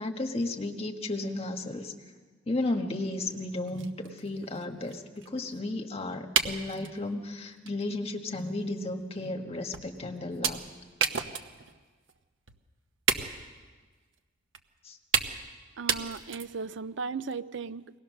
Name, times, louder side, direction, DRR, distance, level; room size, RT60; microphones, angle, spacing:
voice 1, 0.0-1.9 2.5-10.6 14.8-15.0, left 2 dB, 35° left, 4 dB, 1.6 m, -33 dB
sound 1, 3.3-3.4 3.7-5.6 6.4-7.0 7.7-7.8 8.2-8.3 9.0-9.1 9.7-10.0 10.4-11.8 12.1-12.2 12.5-12.6 13.1-13.6 14.5-14.6 15.1-15.6 15.9-16.7, right 7 dB, 85° right, 1.1 m, -31 dB
voice 2, 15.8-18.0, right 5 dB, 70° right, 15 dB, 0.5 m, -36 dB
23.5 x 18.5 x 6.5 m, 1.4 s
head